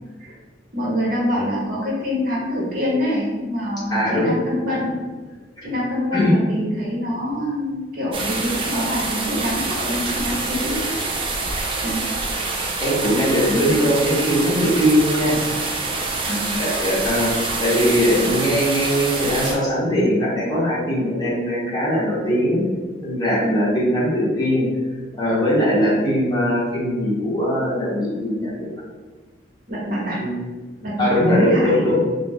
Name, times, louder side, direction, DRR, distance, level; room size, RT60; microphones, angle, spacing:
voice 1, 0.7-5.0 5.6-11.0 11.8-12.2 13.5-13.7 16.2-16.6 23.4-23.7 29.7-30.2 30.8-31.8, equal, 55° right, -5 dB, 0.8 m, -25 dB
voice 2, 3.9-4.3 5.6-5.7 6.1-6.3 12.8-15.4 16.6-17.3 17.6-22.6 23.0-24.7 25.2-28.7 30.2-30.5 31.0-32.0, equal, 25° left, -8 dB, 0.9 m, -20 dB
sound 1, 8.1-19.5, right 3 dB, 30° right, 0.4 m, -26 dB
2.4 x 2.0 x 3.4 m, 1.3 s
head